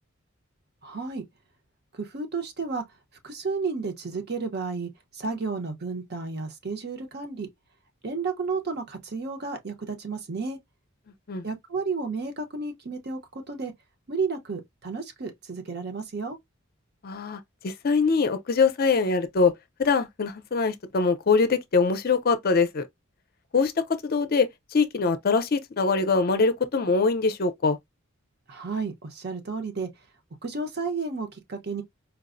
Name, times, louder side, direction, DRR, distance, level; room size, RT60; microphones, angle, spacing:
voice 1, 0.8-1.2 1.9-2.8 3.2-7.5 8.0-10.6 11.4-13.2 13.5-13.7 14.1-16.4 28.5-29.9 30.4-31.8, right 4 dB, 50° right, 0.8 m, -32 dB
voice 2, 17.0-19.5 19.8-22.9 23.5-23.7 24.0-27.8, left 4 dB, 45° left, 0.5 m, -23 dB
4.5 x 2.0 x 2.4 m
head